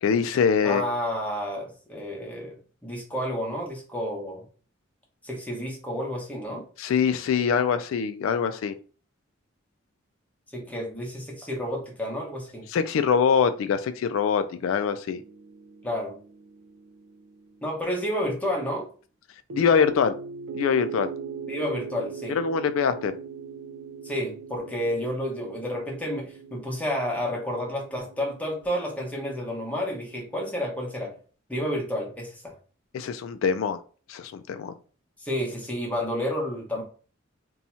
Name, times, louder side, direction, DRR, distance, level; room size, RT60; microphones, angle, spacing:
voice 1, 0.0-0.8 6.8-8.7 12.7-15.2 19.5-20.1 20.5-21.1 22.3-23.1 32.9-33.8 34.1-34.7, left 6 dB, 80° left, 10 dB, 0.3 m, -24 dB
voice 2, 0.6-4.5 5.2-6.7 10.5-12.7 15.8-16.2 17.6-18.9 21.5-22.4 24.0-31.1 31.5-32.5 35.2-36.8, equal, 5° left, -1 dB, 0.9 m, -30 dB
sound 1, 15.1-18.0 19.5-30.8, right 5 dB, 80° right, 0.4 m, -41 dB
2.7 x 2.3 x 4.1 m, 0.40 s
head